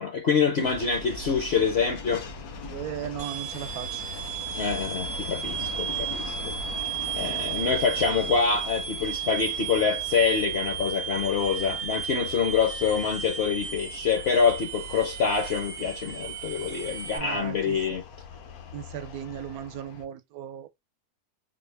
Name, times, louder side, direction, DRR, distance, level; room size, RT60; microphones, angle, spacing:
voice 1, 0.0-2.3 4.5-6.5 7.1-18.0, left 6 dB, 55° left, 0.8 m, -26 dB
sound 1, 0.6-20.1, left 3 dB, 75° left, 1.2 m, -41 dB
voice 2, 2.7-4.0 17.1-17.8 18.7-20.7, right 11 dB, 75° right, 1.0 m, -36 dB
sound 2, 3.2-17.2, right 8 dB, 50° right, 0.8 m, -34 dB
4.1 x 2.0 x 3.1 m
omnidirectional pair, 1.6 m